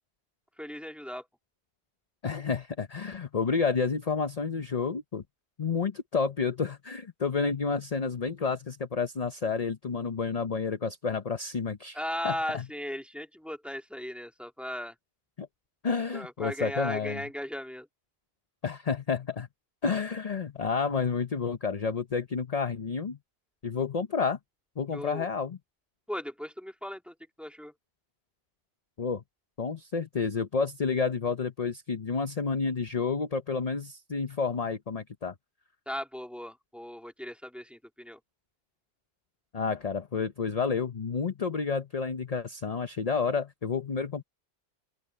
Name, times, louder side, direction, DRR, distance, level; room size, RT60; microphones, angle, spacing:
voice 1, 0.6-1.3 11.9-15.0 16.1-17.9 24.9-25.3 26.1-27.7 35.9-38.2, equal, ahead, 2.2 m, -37 dB
voice 2, 2.2-5.2 5.6-12.0 12.2-12.6 15.4-15.5 15.8-17.2 18.6-19.5 19.8-23.2 23.6-24.4 24.8-25.6 29.0-29.2 29.6-35.3 39.5-44.2, left 5 dB, 40° left, 0.9 m, -30 dB
open air
omnidirectional pair, 1.1 m